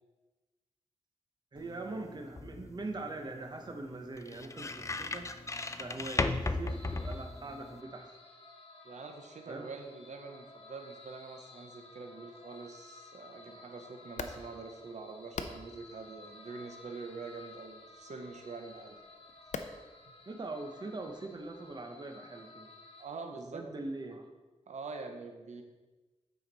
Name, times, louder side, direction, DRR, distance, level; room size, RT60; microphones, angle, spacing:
voice 1, 1.5-5.3 5.8-8.1 9.5-9.7 20.3-22.7 23.5-24.3, right 2 dB, 35° right, 4 dB, 0.8 m, -42 dB
sound 1, 1.6-7.8, left 3 dB, 25° left, 0.4 m, -37 dB
sound 2, 6.7-23.1, left 3 dB, 50° left, 1.3 m, -54 dB
voice 2, 8.8-19.0 23.0-23.6 24.7-25.6, right 4 dB, 75° right, 4 dB, 0.8 m, -45 dB
sound 3, 14.0-21.9, left 5 dB, 90° left, 0.5 m, -48 dB
8.9 x 5.0 x 4.0 m, 1.2 s
wide cardioid pair, 100°, 12 cm